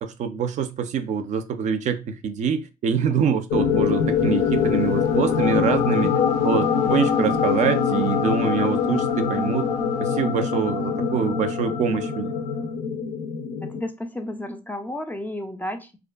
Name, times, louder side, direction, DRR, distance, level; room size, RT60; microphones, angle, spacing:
voice 1, 0.0-6.1 6.4-9.7 10.0-12.4, right 7 dB, 55° right, 0.4 m, -25 dB
sound 1, 3.5-13.8, left 6 dB, 80° left, 0.5 m, -23 dB
voice 2, 13.6-16.0, left 1 dB, 10° left, 0.3 m, -32 dB
2.5 x 2.4 x 2.2 m
supercardioid pair, 80°, 15 cm